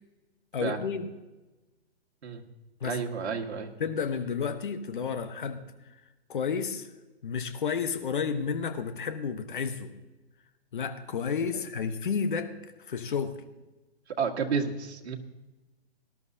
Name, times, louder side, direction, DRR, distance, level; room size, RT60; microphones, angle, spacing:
voice 1, 0.5-1.1 2.8-3.0 3.8-5.6 6.3-6.9 7.2-9.9 10.7-12.5 12.8-13.4, left 6 dB, 50° left, 9 dB, 1.2 m, -31 dB
voice 2, 2.8-3.7 14.2-15.2, right 5 dB, 90° right, 3 dB, 1.8 m, -31 dB
18.5 x 12.5 x 2.8 m, 1.1 s
hypercardioid pair, 175°, 32 cm